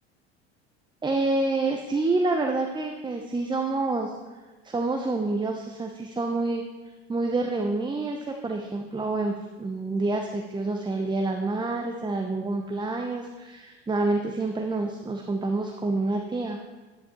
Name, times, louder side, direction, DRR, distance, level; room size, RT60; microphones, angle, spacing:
voice 1, 1.0-4.2 4.6-6.6 7.1-16.6, right 3 dB, 15° right, 3 dB, 0.9 m, -27 dB
11.0 x 10.5 x 3.1 m, 1.2 s
figure-of-eight pair, 70°, 33 cm